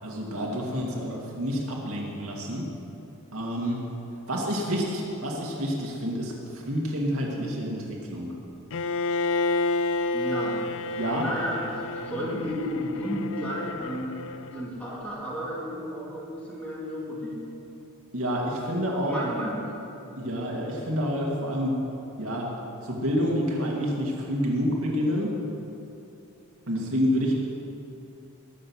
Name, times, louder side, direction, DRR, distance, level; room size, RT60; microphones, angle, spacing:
voice 1, 0.0-2.7 3.3-3.8 4.3-8.4 11.0-11.3 18.1-19.2 20.2-21.8 22.2-22.5 22.8-25.3 26.7-27.3, equal, 70° right, -2 dB, 2.4 m, -28 dB
Bowed string instrument, 8.7-14.7, left 3 dB, 60° left, 0.5 m, -30 dB
voice 2, 10.1-10.6 11.2-14.2 14.5-17.4 19.0-19.8, equal, 5° left, -6 dB, 3.3 m, -32 dB
21.5 x 7.4 x 6.3 m, 2.9 s
head